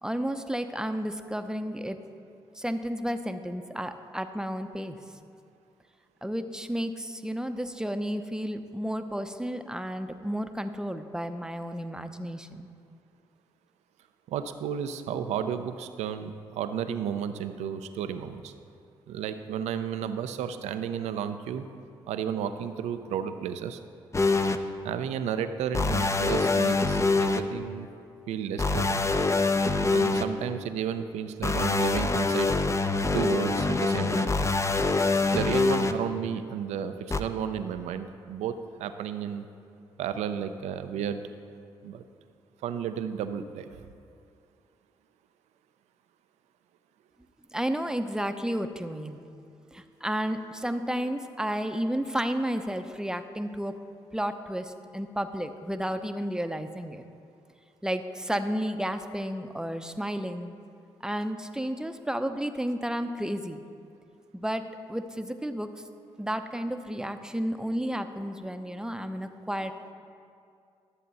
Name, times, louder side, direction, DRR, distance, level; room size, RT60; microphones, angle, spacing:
voice 1, 0.0-2.0 2.6-5.0 6.2-12.8 47.5-53.8 54.1-57.0 57.8-60.5 61.0-63.6 64.3-65.7 66.2-69.7, equal, 5° right, 8 dB, 0.7 m, -32 dB
voice 2, 14.3-18.5 19.1-21.7 22.1-23.8 24.8-27.9 28.3-29.0 29.9-32.5 33.1-34.3 35.3-39.5 40.0-41.2 41.8-42.0 42.6-43.7, right 8 dB, 80° right, 10 dB, 0.5 m, -32 dB
sound 1, 24.1-24.6 25.7-27.4 28.6-30.2 31.4-35.9 37.1-37.2, left 3 dB, 25° left, 0.7 m, -25 dB
12.5 x 7.4 x 4.1 m, 2.4 s
hypercardioid pair, 45°, 11 cm